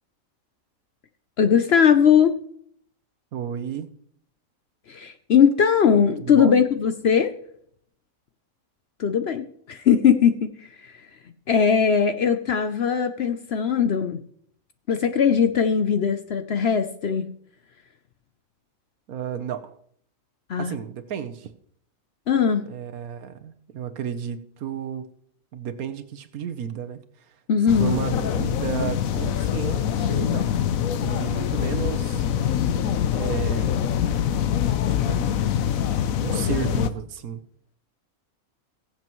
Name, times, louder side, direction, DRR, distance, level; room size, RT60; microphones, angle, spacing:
voice 1, 1.4-2.4 4.9-7.3 9.0-10.5 11.5-14.2 14.9-17.3 20.5-20.7 22.3-22.7 27.5-28.0, left 7 dB, 55° left, 9 dB, 0.8 m, -20 dB
voice 2, 3.3-3.9 6.2-6.5 19.1-19.8 20.6-21.5 22.7-25.1 25.5-27.0 27.8-30.5 31.0-32.2 33.1-33.8 35.0-35.3 36.2-37.4, right 8 dB, 90° right, 10 dB, 1.4 m, -32 dB
sound 1, 27.7-36.9, left 9 dB, 75° left, 1.1 m, -24 dB
21.0 x 7.6 x 3.1 m, 0.65 s
omnidirectional pair, 1.5 m